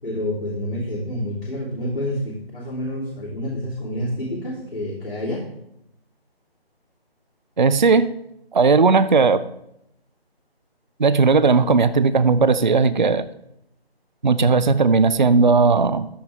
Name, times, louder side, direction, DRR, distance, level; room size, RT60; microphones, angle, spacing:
voice 1, 0.0-5.4, left 1 dB, 70° left, -5 dB, 3.0 m, -28 dB
voice 2, 7.6-8.1 8.5-9.4 11.0-13.2 14.2-16.1, right 4 dB, 50° right, 15 dB, 0.5 m, -16 dB
13.5 x 6.9 x 3.5 m, 0.79 s
figure-of-eight pair, 155°, 31 cm